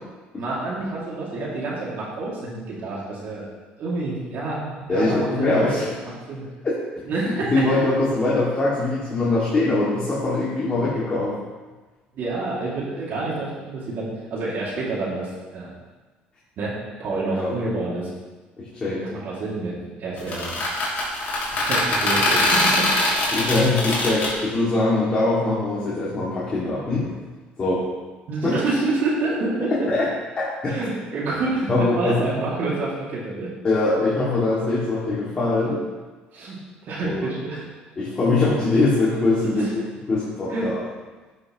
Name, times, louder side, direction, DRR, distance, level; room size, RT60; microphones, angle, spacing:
voice 1, 0.4-3.5 3.8-5.8 6.3-6.4 7.1-7.6 12.1-15.7 16.6-18.1 19.0-19.7 20.0-20.6 21.5-22.9 28.3-29.7 30.7-33.5 36.3-36.6 36.9-37.7 39.4-39.7 40.5-40.7, right 3 dB, 60° right, -6 dB, 2.5 m, -28 dB
voice 2, 4.9-5.9 6.6-6.7 7.5-11.4 17.3-17.5 18.6-19.0 23.3-27.1 27.6-27.8 28.4-28.5 29.9-30.1 30.4-30.8 31.7-32.2 33.6-35.8 37.0-37.2 38.0-39.6 40.1-40.8, left 2 dB, 30° left, -9 dB, 2.3 m, -22 dB
sound 1, 20.2-24.3, left 2 dB, 50° left, 2.8 m, -22 dB
11.0 x 6.2 x 3.1 m, 1.3 s
cardioid pair, 100°, 4 cm